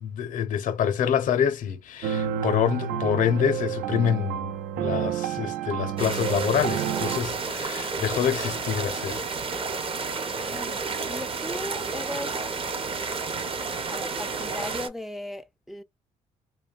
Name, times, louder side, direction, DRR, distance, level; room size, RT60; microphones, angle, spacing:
voice 1, 0.0-9.2, left 8 dB, 65° left, 0.6 m, -26 dB
sound 1, 2.0-7.2, right 9 dB, 80° right, 0.4 m, -30 dB
sound 2, 6.0-14.9, right 4 dB, 40° right, 0.7 m, -31 dB
voice 2, 10.4-12.4 13.9-15.8, left 1 dB, ahead, 0.4 m, -37 dB
2.6 x 2.1 x 2.3 m
supercardioid pair, 70°, 14 cm